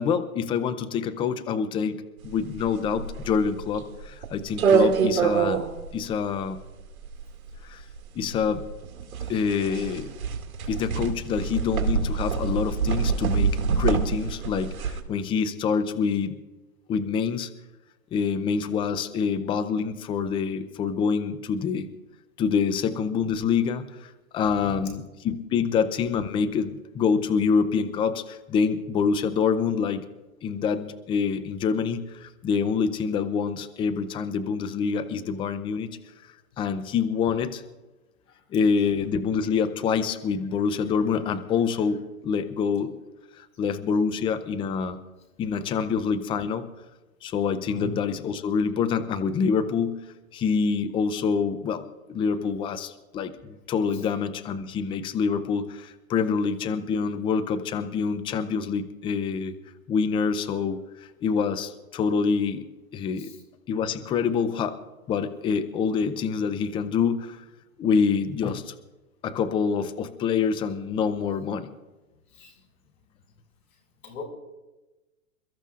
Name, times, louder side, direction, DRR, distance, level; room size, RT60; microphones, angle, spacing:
voice 1, 0.0-5.6 5.9-6.6 7.6-7.8 8.1-8.6 9.3-10.1 10.7-16.3 16.9-17.5 18.1-21.9 22.4-30.0 30.4-36.0 36.6-37.6 38.5-42.9 43.4-45.0 45.4-46.7 47.2-50.0 50.3-59.5 59.9-62.7 62.9-63.3 63.7-64.8 65.1-67.4 67.8-68.7 69.2-71.7, left 6 dB, 10° left, 11 dB, 0.5 m, -26 dB
sound 1, 2.2-15.0, right 6 dB, 70° right, 2.4 m, -26 dB
voice 2, 24.6-24.9 47.7-47.9 63.2-63.4 72.3-72.5 74.0-74.2, left 2 dB, 75° left, 3 dB, 5.4 m, -39 dB
28.5 x 13.5 x 2.5 m, 1.1 s
hypercardioid pair, 130°, 43 cm